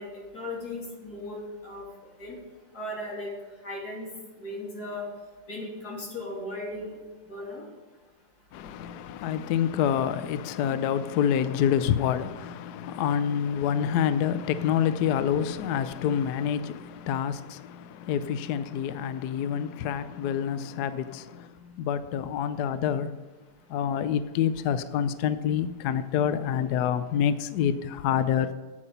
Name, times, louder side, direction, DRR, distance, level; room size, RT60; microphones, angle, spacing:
voice 1, 0.0-1.9 2.2-2.3 2.7-3.3 3.6-4.1 4.4-5.1 5.5-7.0 7.3-7.6, left 1 dB, 45° left, 3.4 m, -37 dB
voice 2, 8.5-23.1 23.7-28.5, left 9 dB, 80° left, 0.9 m, -27 dB
9.9 x 8.5 x 5.5 m
omnidirectional pair, 2.3 m